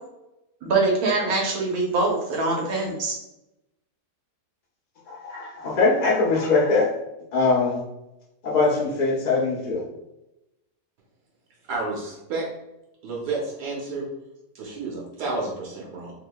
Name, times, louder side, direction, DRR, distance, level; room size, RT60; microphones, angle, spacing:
voice 1, 0.6-3.2, right 3 dB, 70° right, -1 dB, 1.3 m, -23 dB
voice 2, 5.1-6.9 7.3-7.8 8.4-9.8, left 3 dB, 35° left, -4 dB, 0.8 m, -22 dB
voice 3, 11.6-12.5 13.0-14.1 14.5-16.2, right 3 dB, 85° right, -3 dB, 1.4 m, -30 dB
3.7 x 3.2 x 2.2 m, 0.91 s
omnidirectional pair, 1.7 m